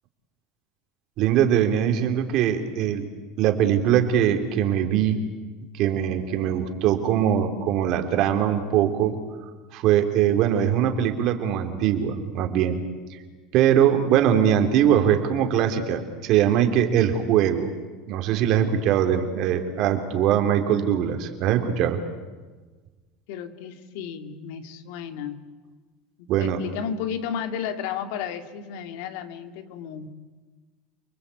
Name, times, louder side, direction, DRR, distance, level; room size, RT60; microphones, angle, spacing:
voice 1, 1.2-3.1 3.4-5.2 5.7-9.1 9.7-12.8 13.5-17.7 18.1-22.0 26.3-26.6, right 9 dB, 55° right, 6 dB, 3.4 m, -21 dB
voice 2, 23.3-25.4 26.2-30.1, left 8 dB, 70° left, 8 dB, 2.2 m, -33 dB
29.5 x 20.5 x 8.6 m, 1.3 s
supercardioid pair, 115°, 0 cm